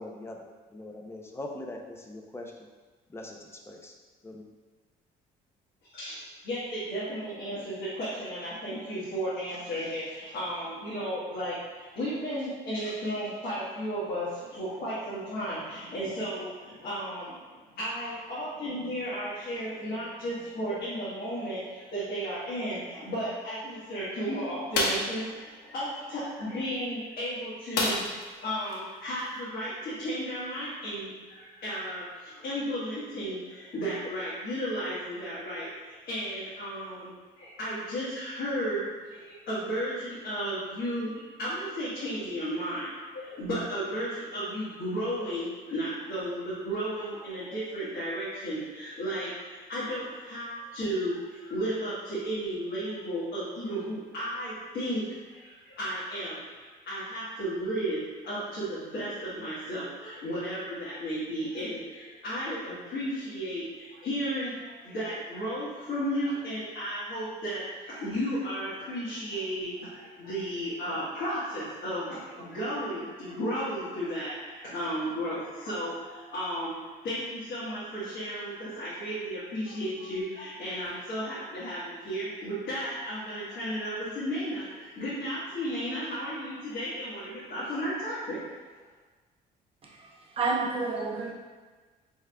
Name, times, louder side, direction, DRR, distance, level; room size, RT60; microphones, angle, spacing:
voice 1, 0.0-2.7 3.1-4.0 4.2-4.4, left 1 dB, 15° left, 1 dB, 0.5 m, -42 dB
voice 2, 5.9-17.3 17.7-76.8 77.0-88.4, equal, 60° left, -11 dB, 1.3 m, -34 dB
sound 1, 24.7-25.1 27.7-28.3 28.7-28.8 29.2-29.4, left 2 dB, 80° left, 0.8 m, -27 dB
voice 3, 89.8-91.3, right 3 dB, 35° right, -1 dB, 0.7 m, -30 dB
4.8 x 3.5 x 2.2 m, 1.4 s
cardioid pair, 110°, 17 cm